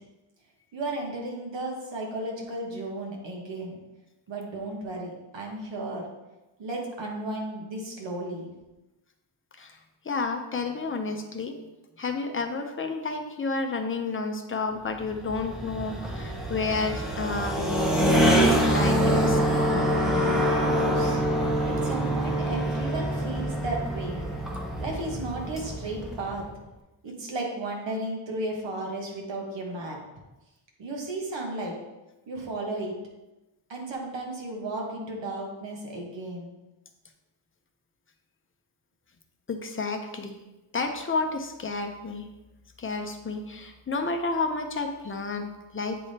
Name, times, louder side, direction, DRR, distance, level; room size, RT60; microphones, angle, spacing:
voice 1, 0.7-3.8 4.3-6.0 6.6-8.5 20.3-21.2 21.6-24.2 24.8-26.4 27.0-30.0 30.8-31.7 32.3-32.9 33.7-36.5, right 2 dB, 70° right, 0 dB, 1.4 m, -34 dB
voice 2, 10.0-11.6 12.0-17.6 18.0-19.4 39.5-40.4 40.7-42.3 42.8-46.0, left 3 dB, 30° left, 4 dB, 0.6 m, -31 dB
sound 1, 14.9-26.5, equal, ahead, 0.9 m, -25 dB
8.4 x 3.5 x 4.2 m, 1.0 s
wide cardioid pair, 165°, 46 cm